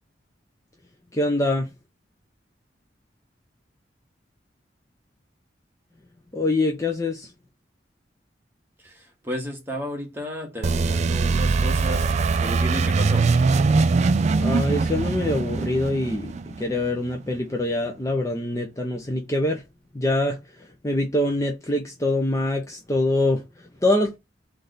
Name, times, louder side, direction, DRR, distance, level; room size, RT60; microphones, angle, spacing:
voice 1, 1.1-1.7 6.3-7.3 14.4-16.3 16.6-19.6 19.9-24.2, left 1 dB, 20° left, 0.6 m, -24 dB
voice 2, 8.8-12.1 12.4-13.3, equal, 15° right, 1.6 m, -33 dB
sound 1, 10.6-17.2, right 4 dB, 40° right, 0.3 m, -22 dB
3.5 x 3.3 x 3.9 m
head